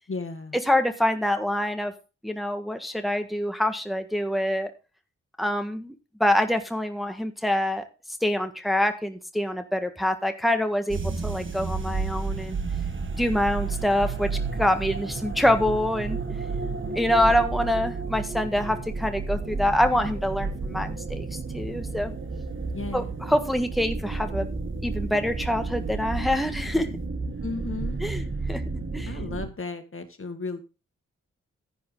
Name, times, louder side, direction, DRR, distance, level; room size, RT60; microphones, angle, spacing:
voice 1, 0.1-0.6 22.7-23.1 27.4-28.0 29.1-30.6, left 4 dB, 45° left, 8 dB, 1.9 m, -34 dB
voice 2, 0.7-1.9 2.2-4.7 5.4-5.9 6.2-7.8 8.2-12.6 13.2-14.3 14.6-16.2 16.9-22.1 22.9-24.5 24.8-26.9 28.0-28.6 28.9-29.1, left 1 dB, ahead, 6 dB, 1.5 m, -25 dB
sound 1, 10.9-29.5, right 4 dB, 40° right, 1.7 m, -31 dB
10.5 x 10.0 x 3.9 m, 0.32 s
supercardioid pair, 40°, 30 cm